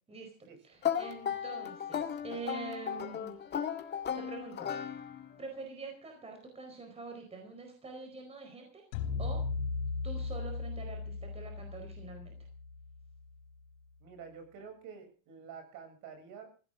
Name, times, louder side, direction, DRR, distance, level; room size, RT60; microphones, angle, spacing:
voice 1, 0.1-3.4 3.8-4.7 5.4-8.9 9.2-9.5 10.0-12.4, right 3 dB, 15° right, 4 dB, 4.6 m, -45 dB
sound 1, 0.8-5.4, left 8 dB, 25° left, 2.0 m, -36 dB
sound 2, 8.9-13.3, left 4 dB, 80° left, 4.1 m, -37 dB
voice 2, 14.0-16.5, right 6 dB, 50° right, 7 dB, 7.7 m, -48 dB
20.5 x 16.0 x 3.8 m, 0.38 s
supercardioid pair, 145°, 40 cm